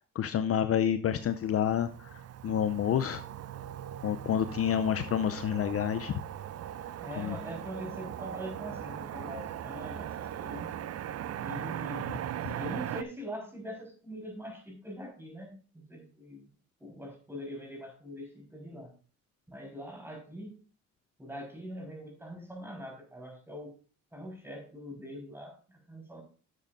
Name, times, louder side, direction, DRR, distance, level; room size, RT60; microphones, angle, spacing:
voice 1, 0.1-3.2 4.0-6.1 7.2-7.4, left 9 dB, 50° left, 10 dB, 0.6 m, -29 dB
Motor vehicle (road), 1.1-13.0, right 11 dB, 55° right, 0.6 m, -39 dB
voice 2, 7.0-10.1 10.4-10.7 11.4-12.1 12.3-16.5 16.8-18.9 19.5-20.6 21.2-23.8 24.1-26.2, equal, 10° right, 1 dB, 4.4 m, -43 dB
11.5 x 7.3 x 2.6 m, 0.37 s
cardioid pair, 90°, 30 cm